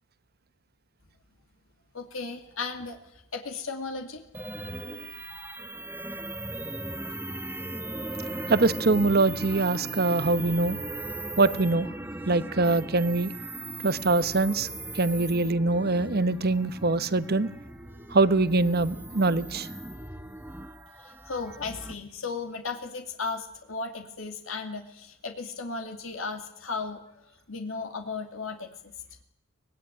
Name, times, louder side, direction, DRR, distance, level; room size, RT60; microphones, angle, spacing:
voice 1, 1.9-4.2 21.0-27.0 27.5-28.7, left 4 dB, 75° left, 4 dB, 2.6 m, -35 dB
sound 1, 4.3-21.9, right 2 dB, 10° right, 1.4 m, -38 dB
voice 2, 8.5-10.8 11.4-11.9 12.3-13.3 13.8-14.7 14.9-17.5 18.1-19.7, right 3 dB, 50° right, 14 dB, 1.0 m, -23 dB
24.0 x 19.5 x 10.0 m, 0.85 s
head